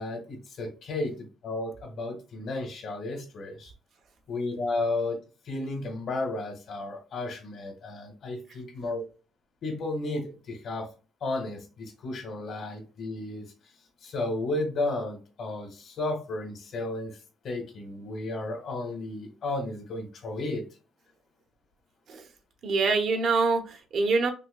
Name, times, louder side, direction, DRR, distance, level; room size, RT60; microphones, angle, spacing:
voice 1, 0.0-3.7 4.3-9.0 9.6-10.9 11.2-13.5 14.0-17.2 17.4-20.7, left 2 dB, 55° left, 1.3 m, -33 dB
voice 2, 22.6-24.3, right 4 dB, 55° right, 0.8 m, -25 dB
5.5 x 2.2 x 2.2 m
cardioid pair, 140°, 0 cm